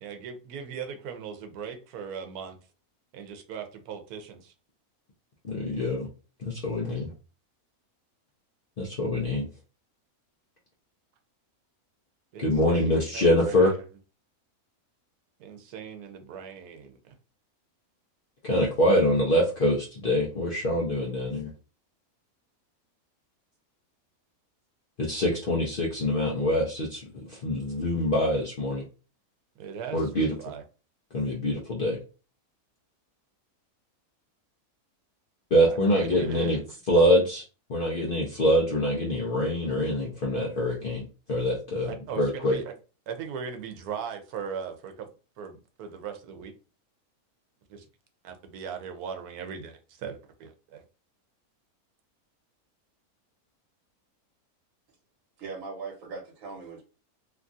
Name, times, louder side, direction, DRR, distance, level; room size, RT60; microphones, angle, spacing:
voice 1, 0.0-2.6 3.1-4.5 12.3-12.8 13.1-13.8 15.4-17.1 29.6-30.6 35.9-36.7 41.8-42.7 43.1-45.1 45.4-46.5 47.7-47.8 48.2-50.8, right 7 dB, 90° right, 6 dB, 1.1 m, -39 dB
voice 2, 5.4-6.1 6.4-7.1 8.8-9.5 12.4-13.7 18.4-21.5 25.0-28.8 29.9-30.3 31.1-32.0 35.5-36.6 36.9-37.4 37.7-42.6, left 1 dB, 50° left, -3 dB, 0.7 m, -25 dB
voice 3, 55.4-56.8, right 4 dB, 65° right, 0 dB, 1.3 m, -39 dB
3.1 x 2.3 x 2.5 m, 0.34 s
omnidirectional pair, 1.6 m